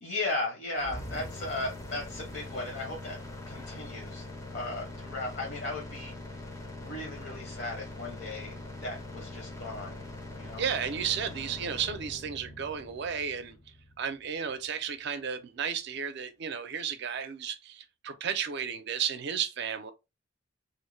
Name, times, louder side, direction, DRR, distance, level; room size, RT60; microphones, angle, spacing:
voice 1, 0.0-3.2 3.5-4.2 4.5-6.1 6.8-10.0 10.3-10.6, left 2 dB, 60° left, 0.8 m, -36 dB
sound 1, 0.8-14.7, left 1 dB, 15° left, 0.5 m, -43 dB
voice 2, 10.6-13.6 14.0-19.9, right 7 dB, 60° right, 0.4 m, -33 dB
2.5 x 2.1 x 3.1 m
head